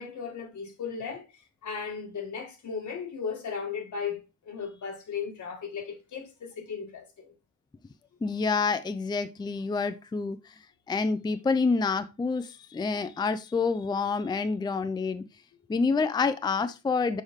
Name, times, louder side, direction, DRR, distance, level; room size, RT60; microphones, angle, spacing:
voice 1, 0.0-7.3, left 6 dB, 80° left, 1.8 m, -36 dB
voice 2, 8.2-10.4 10.9-15.2 15.7-17.2, left 4 dB, 15° left, 0.4 m, -27 dB
6.4 x 4.9 x 3.6 m
wide cardioid pair, 155°, 29 cm